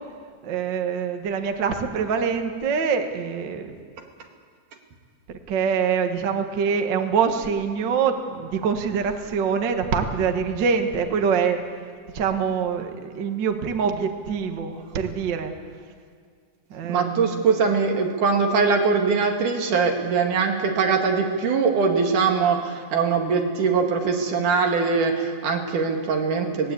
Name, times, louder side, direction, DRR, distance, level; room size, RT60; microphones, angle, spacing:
voice 1, 0.4-3.7 5.5-11.6 12.1-15.5 16.7-17.4, right 6 dB, 45° right, 5 dB, 1.7 m, -24 dB
voice 2, 16.8-26.7, right 5 dB, 80° right, 2 dB, 3.6 m, -22 dB
20.5 x 19.0 x 8.5 m, 2.1 s
omnidirectional pair, 3.5 m